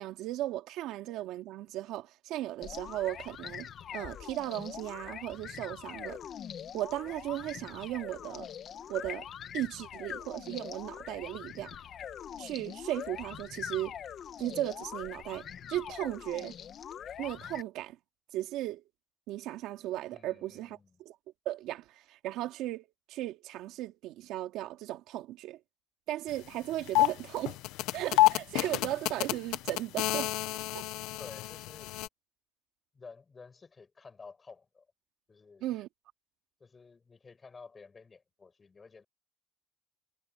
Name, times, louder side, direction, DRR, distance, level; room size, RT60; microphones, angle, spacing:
voice 1, 0.0-6.2 6.7-8.5 8.9-9.3 9.5-11.8 12.4-14.0 14.4-16.6 17.2-18.0 18.3-18.8 19.3-21.2 21.5-25.6 26.1-27.6 27.9-30.3 30.7-30.9 35.6-35.9, right 14 dB, 70° right, 2.2 m, -36 dB
sound 1, 2.6-17.6, left 9 dB, 40° left, 1.5 m, -43 dB
voice 2, 20.1-21.0 31.2-32.0 32.9-34.9 35.3-35.8 36.6-39.0, left 4 dB, 20° left, 6.5 m, -52 dB
sound 2, 26.3-26.4 26.7-32.1, left 18 dB, 85° left, 0.8 m, -29 dB
cardioid pair, 160°, 0 cm